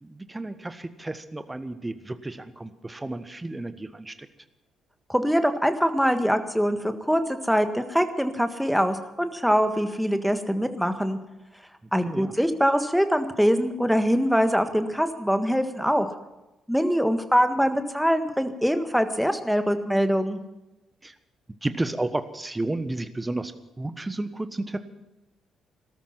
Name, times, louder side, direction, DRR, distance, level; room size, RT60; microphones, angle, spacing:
voice 1, 0.0-4.3 12.1-12.3 21.0-21.1 21.6-23.5 23.8-24.8, right 2 dB, 15° right, 12 dB, 1.3 m, -32 dB
voice 2, 5.1-11.2 11.9-16.1 16.7-20.4, equal, ahead, 8 dB, 1.6 m, -23 dB
17.5 x 13.5 x 5.8 m, 0.99 s
figure-of-eight pair, 45°, 0 cm